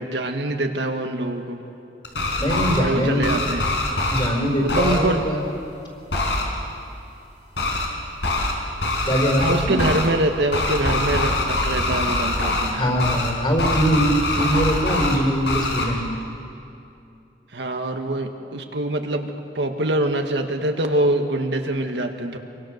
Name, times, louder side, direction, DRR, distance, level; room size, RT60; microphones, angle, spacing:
voice 1, 0.0-1.6 2.8-3.6 4.6-5.3 9.4-12.8 17.5-22.4, right 1 dB, 70° right, 4 dB, 1.7 m, -24 dB
sound 1, 2.0-2.8 3.2-4.3 4.7-5.0 6.1-6.4 7.6-7.9 8.2-8.5 8.8-10.1 10.5-12.7 13.0-13.3 13.6-15.2 15.5-15.8, left 2 dB, 75° left, 4.9 m, -23 dB
voice 2, 2.4-3.3 4.1-5.4 9.1-9.7 12.7-16.1, equal, 30° left, 2 dB, 4.8 m, -22 dB
26.0 x 23.5 x 6.6 m, 2.6 s
head